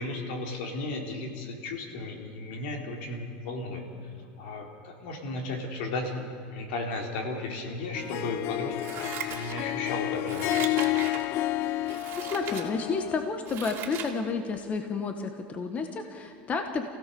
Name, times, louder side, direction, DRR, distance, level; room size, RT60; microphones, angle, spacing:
voice 1, 0.0-3.8 4.4-6.2 6.5-8.8 9.2-10.9, left 2 dB, 75° left, 2 dB, 3.7 m, -34 dB
Harp, 7.9-13.3, left 16 dB, 50° left, 0.5 m, -30 dB
Scissors, 8.8-9.9 10.2-11.3 11.8-12.7 13.1-14.1 14.5-14.6, right 9 dB, 40° right, 2.8 m, -38 dB
voice 2, 11.9-16.9, left 4 dB, 25° left, 6 dB, 1.5 m, -31 dB
27.5 x 16.5 x 7.0 m, 2.3 s
supercardioid pair, 135°, 6 cm